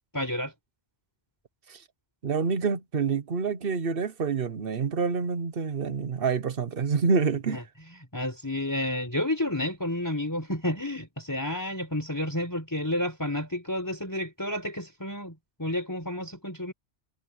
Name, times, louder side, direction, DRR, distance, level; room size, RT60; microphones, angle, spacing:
voice 1, 0.1-0.5 7.5-7.6 8.1-16.7, left 1 dB, 15° left, 4.8 m, -30 dB
voice 2, 2.2-7.6, right 5 dB, 55° right, 1.2 m, -27 dB
omnidirectional pair, 1.1 m